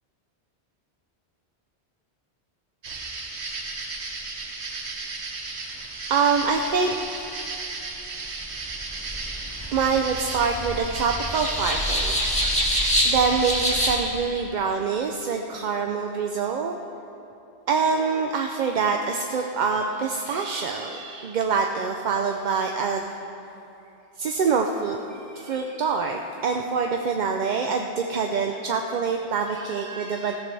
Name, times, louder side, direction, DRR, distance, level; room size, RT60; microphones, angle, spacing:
sound 1, 2.8-14.0, right 3 dB, 75° right, 1.4 m, -34 dB
voice 1, 6.1-6.9 9.7-12.2 13.0-16.7 17.7-23.1 24.2-30.3, right 5 dB, 50° right, 3 dB, 0.6 m, -25 dB
sound 2, 8.6-13.9, equal, 5° left, 2.0 m, -26 dB
15.0 x 14.0 x 3.3 m, 2.9 s
omnidirectional pair, 1.1 m